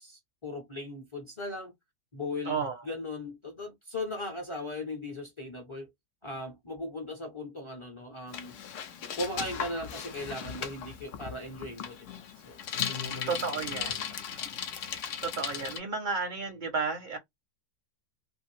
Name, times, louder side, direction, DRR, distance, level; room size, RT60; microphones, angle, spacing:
voice 1, 0.0-1.7 2.1-2.6 2.8-5.9 6.2-8.6 9.2-12.1 12.4-12.6 12.8-13.5 13.7-14.5, left 2 dB, 35° left, 0.4 m, -38 dB
voice 2, 2.5-2.8 13.3-14.0 15.2-17.2, right 5 dB, 55° right, 0.5 m, -32 dB
Bicycle, 8.3-15.8, left 8 dB, 65° left, 0.8 m, -37 dB
2.6 x 2.5 x 3.0 m
omnidirectional pair, 1.6 m